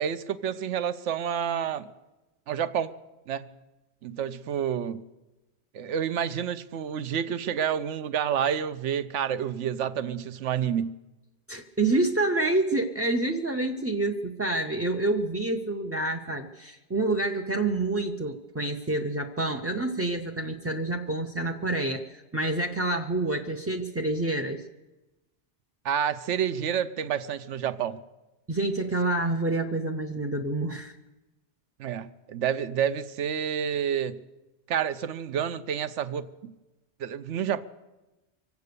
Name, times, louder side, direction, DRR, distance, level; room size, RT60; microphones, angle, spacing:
voice 1, 0.0-1.9 2.5-2.9 3.3-3.5 4.0-5.0 5.7-10.9 25.8-28.0 31.8-34.2 34.7-36.5 37.0-37.6, right 8 dB, 75° right, 13 dB, 1.0 m, -29 dB
voice 2, 11.5-24.7 28.5-31.0, right 2 dB, 20° right, 4 dB, 0.4 m, -28 dB
24.5 x 8.2 x 6.8 m, 1.0 s
omnidirectional pair, 1.2 m